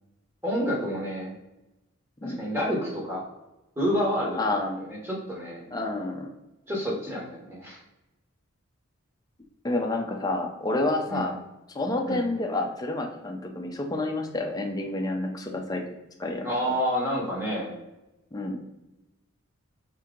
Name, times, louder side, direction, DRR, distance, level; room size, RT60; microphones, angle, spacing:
voice 1, 0.4-1.3 2.2-3.2 3.8-4.4 4.7-5.7 6.7-7.8 11.1-11.3 12.1-12.3 16.4-17.8, equal, 10° right, -4 dB, 1.0 m, -29 dB
voice 2, 4.3-4.8 5.7-6.3 9.6-11.4 11.7-15.8 16.2-16.5 18.3-18.6, left 2 dB, 20° left, 2 dB, 0.5 m, -29 dB
4.5 x 2.8 x 3.7 m, 0.99 s
head